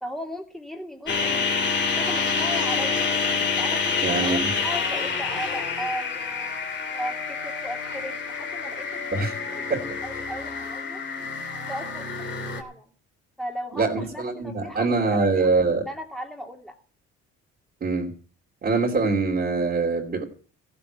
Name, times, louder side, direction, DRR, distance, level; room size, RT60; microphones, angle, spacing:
voice 1, 0.0-3.1 3.6-6.5 6.9-9.7 10.0-11.0 11.5-12.1 12.5-12.9 13.4-15.5 15.9-16.8, equal, ahead, 2.8 m, -36 dB
sound 1, 1.1-12.6, left 5 dB, 40° left, 2.8 m, -27 dB
voice 2, 4.0-4.5 9.1-9.4 9.7-9.8 13.7-15.8 17.8-18.1 18.6-20.2, right 3 dB, 35° right, 2.8 m, -23 dB
15.0 x 6.9 x 8.0 m
cardioid pair, 115°, 29 cm